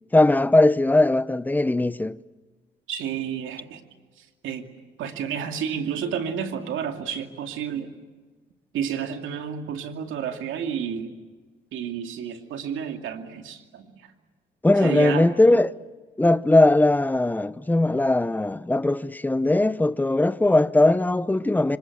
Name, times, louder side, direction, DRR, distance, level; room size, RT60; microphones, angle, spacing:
voice 1, 0.1-2.2 14.6-15.7 16.2-21.8, left 2 dB, 10° left, 0.8 m, -19 dB
voice 2, 2.9-3.8 4.2-4.7 5.0-7.9 8.7-11.1 11.7-14.1 14.8-15.3, right 8 dB, 85° right, 2.5 m, -31 dB
27.5 x 25.5 x 8.0 m
cardioid pair, 90°, 20 cm